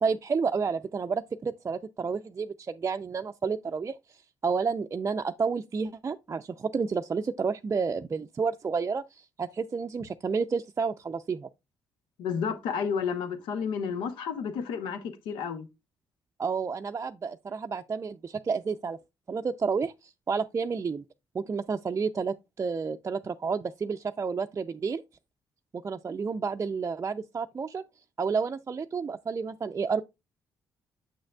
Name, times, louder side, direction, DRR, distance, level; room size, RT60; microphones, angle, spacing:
voice 1, 0.0-11.5 16.4-19.0 19.3-21.0 21.3-25.0 25.8-27.8 28.2-30.0, right 5 dB, 35° right, 0.4 m, -30 dB
voice 2, 12.2-15.7, left 6 dB, 85° left, 0.8 m, -31 dB
7.9 x 6.4 x 2.3 m
supercardioid pair, 60°, 8 cm